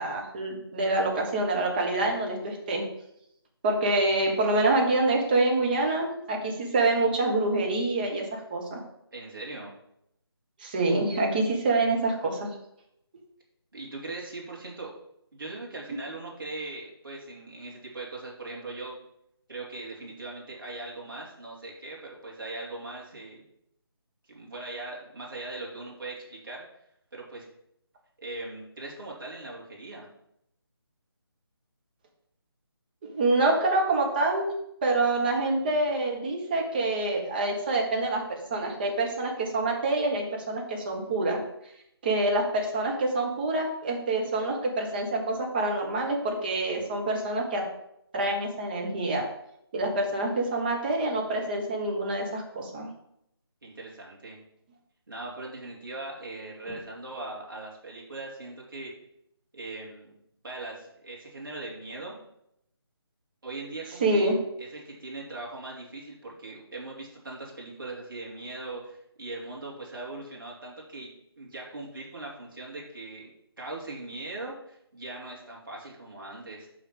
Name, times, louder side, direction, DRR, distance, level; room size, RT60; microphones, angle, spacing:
voice 1, 0.0-2.8 3.6-8.8 10.6-12.5 33.0-34.5 34.8-41.4 42.0-47.6 48.1-49.2 49.7-52.9 64.0-64.4, right 2 dB, 20° right, 0 dB, 1.2 m, -26 dB
voice 2, 9.1-9.7 13.7-14.9 15.3-18.9 19.5-23.4 24.3-26.6 27.1-27.4 28.2-30.1 53.6-54.4 55.1-58.9 59.5-60.2 60.4-62.2 63.4-64.3 64.6-71.1 71.4-73.3 73.6-76.7, right 2 dB, 55° right, -3 dB, 3.0 m, -40 dB
5.8 x 5.5 x 6.9 m, 0.77 s
figure-of-eight pair, 155°, 13 cm